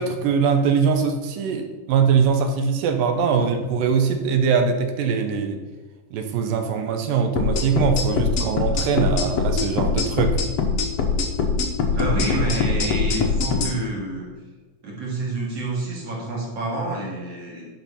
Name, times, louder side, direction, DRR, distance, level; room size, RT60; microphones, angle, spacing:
voice 1, 0.0-5.6 6.1-10.4, right 6 dB, 80° right, 6 dB, 2.5 m, -22 dB
sound 1, 7.4-13.7, left 4 dB, 75° left, 1.4 m, -22 dB
voice 2, 12.0-14.3 14.8-17.7, right 2 dB, 50° right, -4 dB, 2.8 m, -28 dB
10.5 x 4.5 x 5.6 m, 1.3 s
omnidirectional pair, 4.0 m